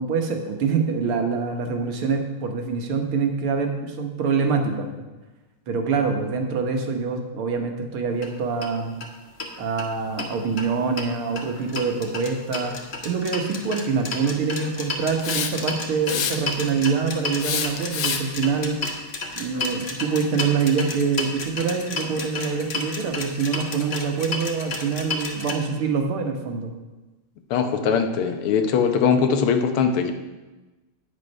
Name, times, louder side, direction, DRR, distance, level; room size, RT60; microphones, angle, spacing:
voice 1, 0.0-4.9 5.7-9.0 9.6-12.8 13.0-18.8 19.4-26.7, right 5 dB, 80° right, 4 dB, 2.0 m, -25 dB
sound 1, 8.1-8.3 8.6-8.7 9.0-9.1 9.4-10.3 10.6-25.5, left 3 dB, 40° left, 1.1 m, -32 dB
Hiss, 15.2-15.7 16.1-16.7 17.4-18.4, left 7 dB, 65° left, 1.4 m, -27 dB
voice 2, 27.5-30.1, left 6 dB, 85° left, 7 dB, 1.8 m, -21 dB
9.0 x 8.7 x 5.3 m, 1.1 s
omnidirectional pair, 2.3 m